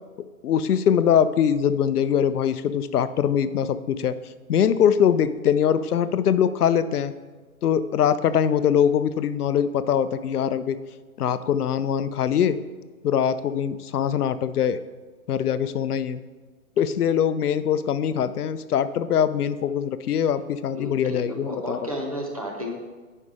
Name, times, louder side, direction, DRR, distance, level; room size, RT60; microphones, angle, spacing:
voice 1, 0.4-4.2 4.5-7.1 7.6-10.8 11.2-12.6 13.0-14.8 15.3-16.2 16.8-21.8, left 8 dB, 80° left, 13 dB, 0.6 m, -22 dB
voice 2, 20.7-22.8, equal, 25° right, 1 dB, 0.7 m, -32 dB
7.3 x 5.4 x 4.8 m, 1.4 s
hypercardioid pair, 175°, 45 cm